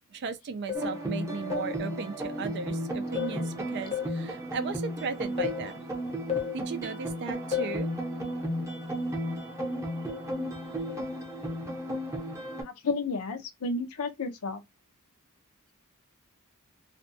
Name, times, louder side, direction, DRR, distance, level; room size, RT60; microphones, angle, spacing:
voice 1, 0.1-5.8 6.5-7.9, right 5 dB, 50° right, 0.4 m, -36 dB
sound 1, 0.7-1.0 1.5-1.8 3.2-3.5 3.9-4.2 5.4-5.7 6.3-6.6 7.5-7.8 10.1-10.3 10.9-11.1, left 9 dB, 30° left, 0.6 m, -33 dB
sound 2, 0.7-12.6, right 1 dB, 15° right, 0.7 m, -34 dB
voice 2, 12.6-14.6, left 3 dB, 75° left, 0.6 m, -32 dB
2.5 x 2.3 x 2.5 m
head